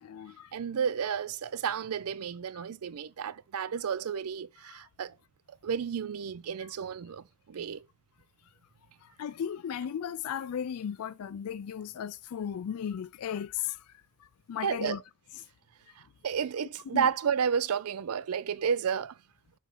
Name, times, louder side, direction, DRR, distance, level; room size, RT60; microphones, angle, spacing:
voice 1, 0.0-0.5 4.7-4.8 9.2-13.8 14.5-15.0 16.9-17.1, left 8 dB, 75° left, 0.4 m, -35 dB
voice 2, 0.5-5.1 5.6-7.8 14.6-15.0 16.2-19.2, right 7 dB, 80° right, 0.5 m, -31 dB
6.1 x 4.1 x 5.4 m
head